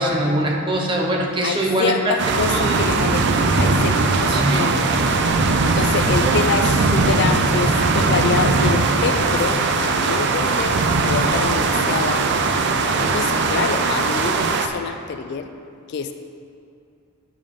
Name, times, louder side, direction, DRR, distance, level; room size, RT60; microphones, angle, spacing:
voice 1, 0.0-2.7 4.3-4.7 6.2-6.4, right 1 dB, 25° right, 0 dB, 0.8 m, -22 dB
voice 2, 1.4-5.2 5.6-10.8 11.0-12.6 13.0-15.5 15.9-16.1, left 5 dB, 55° left, 8 dB, 0.3 m, -26 dB
sound 1, 2.2-14.7, right 3 dB, 55° right, 0.4 m, -19 dB
9.6 x 5.1 x 3.6 m, 2.5 s
head